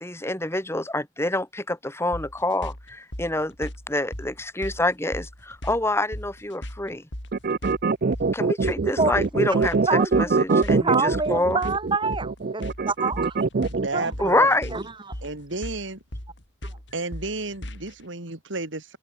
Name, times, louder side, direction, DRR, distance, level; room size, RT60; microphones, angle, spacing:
voice 1, 0.0-7.0 8.3-11.6 14.2-14.7, left 2 dB, 15° left, 2.6 m, -26 dB
sound 1, 2.1-18.0, equal, 65° left, 6.3 m, -38 dB
sound 2, 7.3-14.1, right 4 dB, 50° right, 0.5 m, -23 dB
voice 2, 9.9-13.4 13.9-14.5 14.7-14.8, right 4 dB, 25° right, 1.3 m, -27 dB
voice 3, 13.7-14.8 15.2-16.0 16.9-19.0, right 3 dB, 75° right, 2.9 m, -32 dB
head